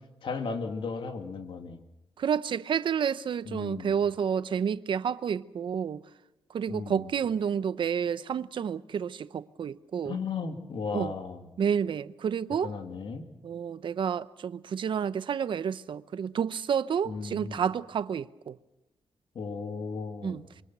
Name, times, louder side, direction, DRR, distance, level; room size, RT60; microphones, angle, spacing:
voice 1, 0.2-1.8 3.5-4.0 6.7-7.1 10.0-11.5 12.6-13.3 17.0-17.6 19.3-20.4, left 4 dB, 70° left, 2.6 m, -35 dB
voice 2, 2.2-6.0 6.5-10.2 10.9-11.1 11.6-12.7 13.4-18.5 20.2-20.4, right 7 dB, 65° right, 0.7 m, -30 dB
26.0 x 23.5 x 6.2 m
wide cardioid pair, 120°, 9 cm